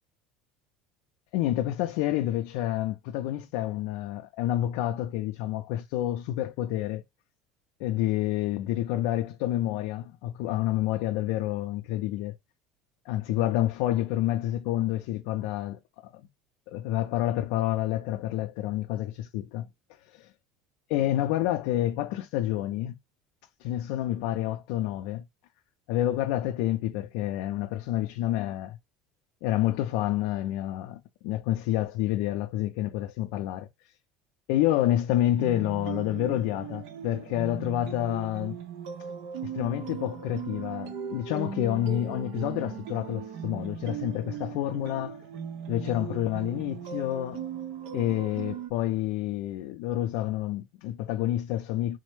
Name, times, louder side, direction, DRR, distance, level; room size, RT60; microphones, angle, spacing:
voice 1, 1.3-7.0 7.8-12.4 13.1-16.1 16.7-19.7 20.1-20.3 20.9-23.0 23.6-25.2 25.9-28.8 29.4-33.7 34.5-38.6 39.4-45.2 45.7-47.4 47.9-52.0, left 13 dB, 65° left, 0.4 m, -28 dB
sound 1, 35.4-48.7, right 8 dB, 60° right, 0.8 m, -38 dB
4.1 x 2.1 x 3.1 m
cardioid pair, 170°, 0 cm